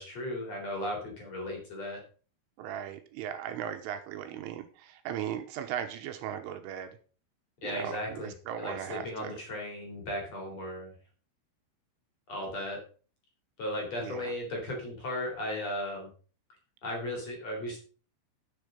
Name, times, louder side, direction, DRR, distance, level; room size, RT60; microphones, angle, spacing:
voice 1, 0.0-2.0 7.6-8.3 8.6-10.9 12.3-12.8 13.6-16.1 16.8-17.8, left 1 dB, 35° left, 1 dB, 4.1 m, -36 dB
voice 2, 2.6-7.0 7.6-9.4 14.0-14.3, right 10 dB, 80° right, 7 dB, 3.5 m, -37 dB
10.5 x 8.1 x 5.1 m, 0.40 s
omnidirectional pair, 5.8 m